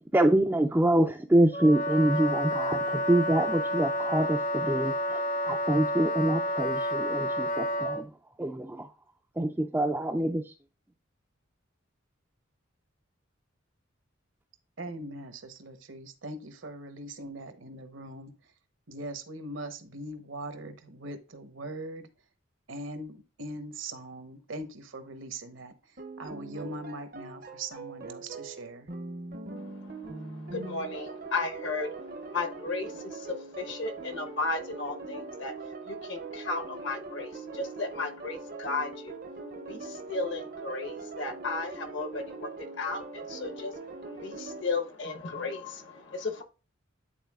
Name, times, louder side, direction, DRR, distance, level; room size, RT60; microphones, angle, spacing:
voice 1, 0.1-8.1 8.4-8.9 9.4-10.5, right 1 dB, 10° right, 2 dB, 0.3 m, -26 dB
Wind instrument woodwind instrument, 1.5-8.0, equal, 40° left, 0.6 m, -30 dB
voice 2, 14.8-18.3 18.9-22.1 22.7-28.9, right 1 dB, 70° right, 9 dB, 0.9 m, -41 dB
sound 1, 26.0-44.6, right 3 dB, 45° right, 0.6 m, -41 dB
voice 3, 29.6-39.2 39.6-46.4, left 3 dB, 60° left, 6 dB, 1.0 m, -35 dB
10.0 x 4.0 x 2.3 m, 0.32 s
head